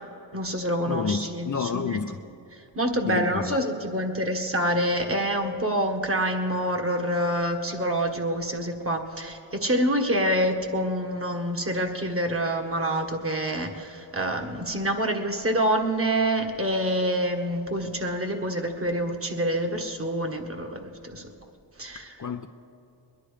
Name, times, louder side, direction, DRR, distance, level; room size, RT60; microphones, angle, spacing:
voice 1, 0.3-2.0 2.7-21.3 21.8-22.1, right 1 dB, 30° right, 1.6 m, -27 dB
voice 2, 0.9-2.2 3.1-3.6 22.2-22.5, left 6 dB, 45° left, 0.7 m, -29 dB
21.5 x 10.5 x 5.0 m
cardioid pair, 60°, 45 cm